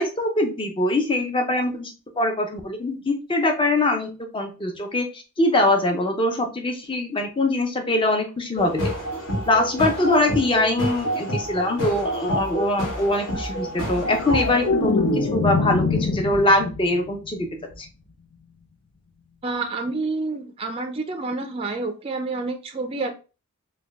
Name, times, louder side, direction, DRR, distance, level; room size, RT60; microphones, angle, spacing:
voice 1, 0.0-4.1 4.3-8.9 9.5-17.5 17.8-17.9, left 1 dB, 25° left, 4 dB, 0.6 m, -23 dB
sound 1, 8.6-14.7, equal, 60° left, 1.8 m, -28 dB
sound 2, 13.8-17.0 17.3-17.7, left 3 dB, 85° left, 0.7 m, -24 dB
voice 2, 19.4-23.1, right 3 dB, 25° right, 6 dB, 0.4 m, -28 dB
4.3 x 2.2 x 3.4 m, 0.33 s
head